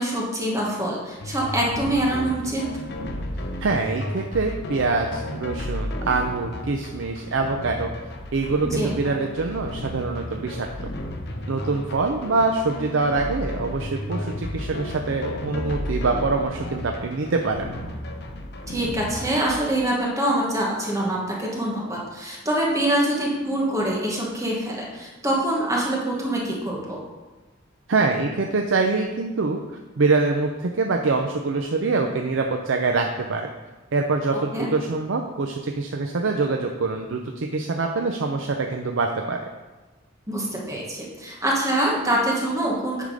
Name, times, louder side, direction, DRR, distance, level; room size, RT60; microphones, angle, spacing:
voice 1, 0.0-2.6 8.6-8.9 18.7-27.0 34.5-34.7 40.3-43.0, right 1 dB, 15° right, -3 dB, 1.3 m, -25 dB
sound 1, 1.2-19.7, left 1 dB, 55° left, 0.8 m, -33 dB
voice 2, 3.6-7.9 8.3-10.7 11.5-17.7 27.9-33.5 33.9-39.4, right 3 dB, 70° right, 3 dB, 0.6 m, -24 dB
10.0 x 3.7 x 4.9 m, 1.2 s
head